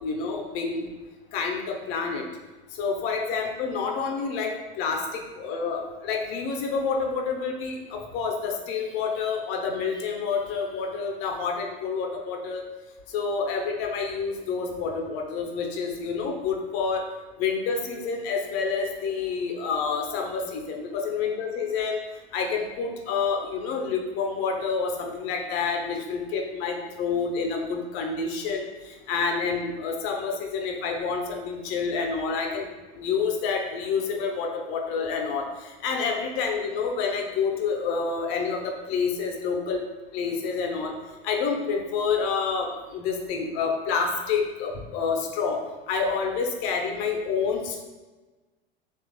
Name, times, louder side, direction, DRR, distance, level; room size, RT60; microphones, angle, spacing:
voice 1, 0.0-0.8 1.3-2.3 2.8-4.5 4.8-12.6 13.1-17.0 17.4-22.0 22.3-32.7 33.0-39.8 40.1-40.9 41.2-42.7 42.9-45.6 45.9-47.8, left 5 dB, 45° left, 2 dB, 0.7 m, -28 dB
3.2 x 2.4 x 3.8 m, 1.2 s
figure-of-eight pair, 80°, 31 cm